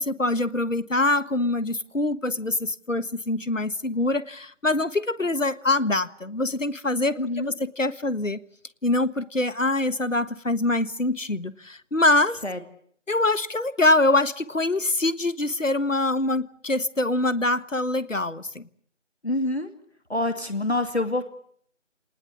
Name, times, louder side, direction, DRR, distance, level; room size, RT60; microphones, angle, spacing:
voice 1, 0.0-8.4 8.8-12.4 13.1-18.7, left 2 dB, 85° left, 1.5 m, -24 dB
voice 2, 7.2-7.5 12.4-12.6 19.2-19.7 20.1-21.2, left 2 dB, 60° left, 2.5 m, -26 dB
27.0 x 19.5 x 8.4 m
figure-of-eight pair, 175°, 37 cm